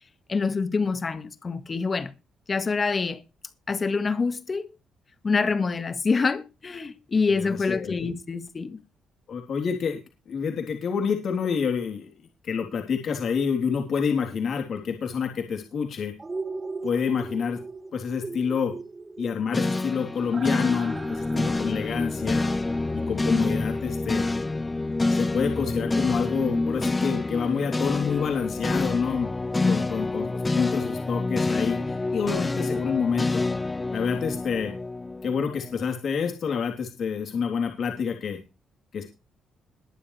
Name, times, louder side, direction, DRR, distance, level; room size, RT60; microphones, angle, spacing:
voice 1, 0.3-2.1 2.5-3.2 3.7-4.7 5.2-8.8 29.6-29.8, left 4 dB, 35° left, 1.8 m, -26 dB
voice 2, 7.3-7.9 9.3-10.0 10.3-12.1 12.4-16.1 16.8-17.6 17.9-18.7 19.2-22.5 22.9-24.3 25.1-29.3 29.6-33.4 33.9-34.7 35.2-38.4 38.9-39.0, left 6 dB, 60° left, 3.4 m, -28 dB
sound 1, 16.2-24.1 24.4-24.5, right 3 dB, 25° right, 3.8 m, -39 dB
sound 2, 19.5-35.8, left 2 dB, 20° left, 0.6 m, -27 dB
21.5 x 7.4 x 3.3 m
cardioid pair, 90°, 0 cm